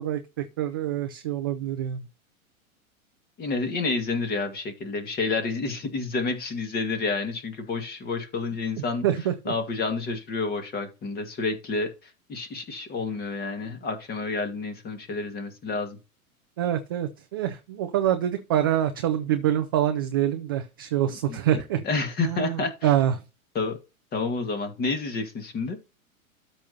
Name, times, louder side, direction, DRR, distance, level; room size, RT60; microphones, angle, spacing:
voice 1, 0.0-2.0 9.0-9.5 16.6-21.8 22.2-23.2, right 11 dB, 20° right, 7 dB, 0.3 m, -26 dB
voice 2, 3.4-9.1 9.5-16.0 21.1-22.9 23.5-23.8 24.1-25.8, left 3 dB, 20° left, 8 dB, 1.9 m, -29 dB
13.0 x 5.4 x 2.8 m, 0.28 s
figure-of-eight pair, 105°, 43 cm